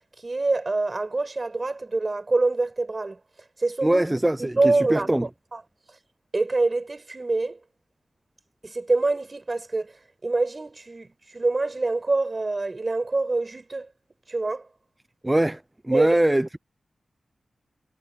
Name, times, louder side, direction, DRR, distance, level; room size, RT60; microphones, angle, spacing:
voice 1, 0.2-3.2 3.6-4.0 4.4-5.6 6.3-7.6 8.6-9.9 10.2-13.9 14.3-14.7 15.9-16.2, right 3 dB, 25° right, 6.4 m, -25 dB
voice 2, 3.8-5.3 15.2-16.6, right 1 dB, 10° right, 0.5 m, -22 dB
wide cardioid pair, 150°, 0 cm